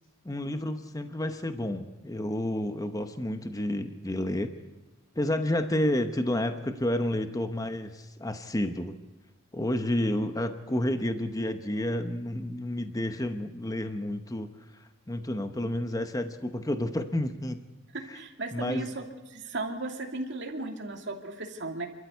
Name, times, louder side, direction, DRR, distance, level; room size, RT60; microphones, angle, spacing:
voice 1, 0.2-4.5 5.2-8.9 9.5-14.5 15.1-17.6 18.1-18.2 18.5-18.9, left 1 dB, 15° left, 8 dB, 0.9 m, -30 dB
voice 2, 17.9-21.9, right 2 dB, 60° right, 3 dB, 2.6 m, -36 dB
27.0 x 13.5 x 8.2 m, 1.2 s
head